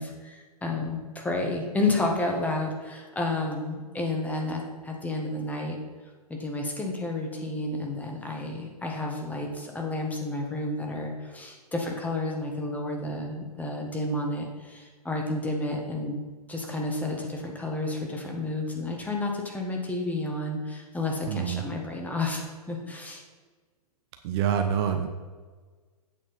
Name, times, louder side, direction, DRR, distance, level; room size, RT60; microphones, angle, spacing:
voice 1, 0.0-5.8 6.3-16.2 16.5-23.2, left 2 dB, 10° left, 1 dB, 1.6 m, -31 dB
voice 2, 21.3-21.6 24.2-25.1, right 8 dB, 40° right, 6 dB, 0.8 m, -26 dB
8.6 x 6.5 x 5.6 m, 1.4 s
figure-of-eight pair, 120°, 20 cm